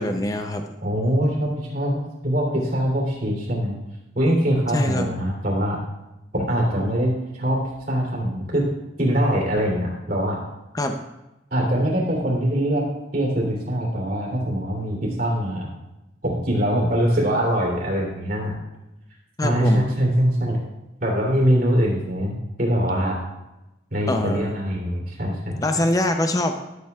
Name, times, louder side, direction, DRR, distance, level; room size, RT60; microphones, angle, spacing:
voice 1, 0.0-0.6 4.7-5.1 10.7-11.0 19.4-19.8 24.1-24.6 25.6-26.6, left 1 dB, 20° left, 6 dB, 0.5 m, -23 dB
voice 2, 0.8-3.8 4.1-5.8 6.3-7.1 7.4-8.7 9.0-10.4 11.5-12.9 13.1-15.7 16.2-18.5 19.4-20.6 21.0-23.2 23.9-25.6, equal, 50° right, -3 dB, 2.9 m, -23 dB
12.0 x 8.3 x 2.3 m, 0.94 s
head